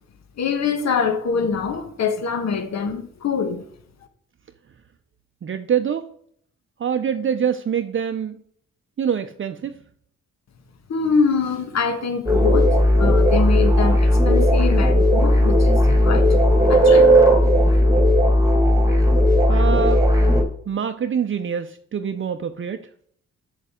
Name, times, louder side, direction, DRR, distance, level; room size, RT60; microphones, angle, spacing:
voice 1, 0.4-3.6 10.9-17.7, left 5 dB, 65° left, 1.3 m, -24 dB
voice 2, 5.4-6.0 6.8-8.4 9.0-9.7 15.8-16.0 19.5-20.0 20.7-22.8, right 8 dB, 45° right, 0.6 m, -25 dB
sound 1, 12.3-20.4, equal, 10° right, 1.7 m, -16 dB
7.0 x 6.7 x 3.7 m
cardioid pair, 75°, 30 cm